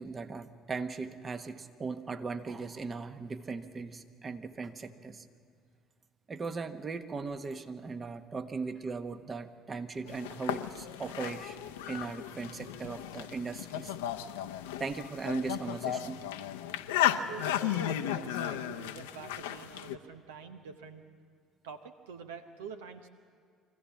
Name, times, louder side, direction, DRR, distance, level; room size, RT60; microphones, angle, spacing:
voice 1, 0.0-5.3 6.3-13.9 14.8-16.2, right 4 dB, 35° right, 9 dB, 1.2 m, -38 dB
sound 1, 10.1-20.0, left 11 dB, 80° left, 0.6 m, -35 dB
voice 2, 17.0-21.1 21.6-23.1, right 6 dB, 80° right, 8 dB, 0.8 m, -46 dB
24.0 x 15.5 x 7.2 m, 2.2 s
hypercardioid pair, 60°, 0 cm